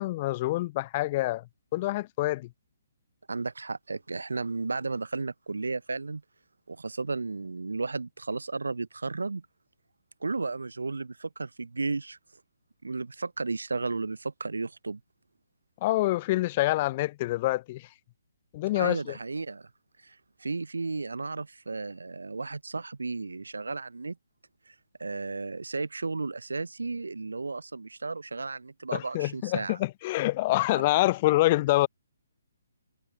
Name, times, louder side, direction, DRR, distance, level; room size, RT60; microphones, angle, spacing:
voice 1, 0.0-1.4 1.7-2.5 15.8-17.9 18.5-19.2 28.9-31.9, left 18 dB, 35° left, 0.8 m, -26 dB
voice 2, 3.3-6.2 6.7-9.5 10.2-12.2 12.8-15.0 18.8-19.7 20.0-24.2 24.7-24.8 25.0-29.8, right 3 dB, 80° right, 7.1 m, -34 dB
figure-of-eight pair, 140°, 0 cm